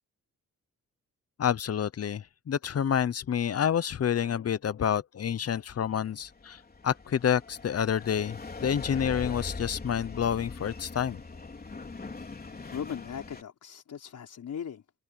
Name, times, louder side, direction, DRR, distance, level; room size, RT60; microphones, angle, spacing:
voice 1, 1.4-11.2, left 8 dB, 50° left, 0.8 m, -28 dB
sound 1, 5.9-13.4, left 3 dB, 30° left, 4.0 m, -41 dB
voice 2, 12.7-14.8, left 8 dB, 70° left, 5.1 m, -38 dB
wide cardioid pair, 120°, 31 cm